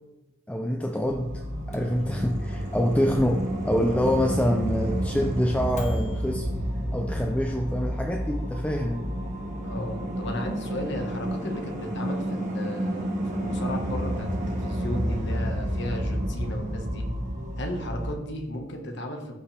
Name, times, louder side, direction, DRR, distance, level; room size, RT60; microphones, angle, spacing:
voice 1, 0.5-1.4 1.7-6.5 6.9-9.1, equal, 5° left, 2 dB, 0.5 m, -26 dB
sound 1, 1.0-18.2, equal, 35° right, 1.6 m, -30 dB
Microwave oven, 1.5-6.3, left 1 dB, 35° left, 1.3 m, -39 dB
voice 2, 9.6-17.1 17.6-19.3, left 1 dB, 55° left, 3 dB, 1.5 m, -35 dB
14.5 x 5.6 x 3.4 m, 0.99 s
head